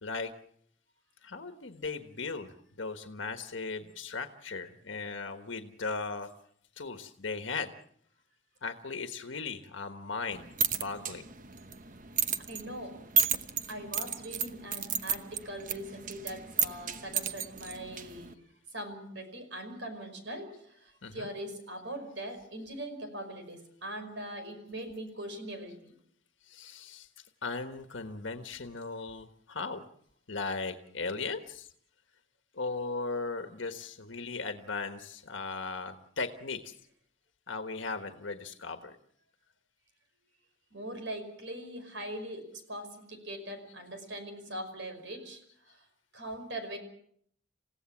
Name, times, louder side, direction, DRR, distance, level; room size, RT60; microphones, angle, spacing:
voice 1, 0.0-0.3 1.2-6.3 6.8-7.7 8.6-10.5 10.7-11.3 21.0-21.3 26.4-27.1 27.4-29.8 30.3-31.7 32.5-36.7 37.5-39.0, left 4 dB, 85° left, 7 dB, 1.4 m, -37 dB
sound 1, 10.3-18.3, right 7 dB, 45° right, 1.0 m, -33 dB
voice 2, 12.5-13.0 13.7-18.4 18.7-25.9 40.7-45.4 45.7-45.9 46.1-46.8, right 1 dB, 75° right, 7 dB, 5.5 m, -41 dB
28.5 x 16.5 x 7.3 m, 0.67 s
head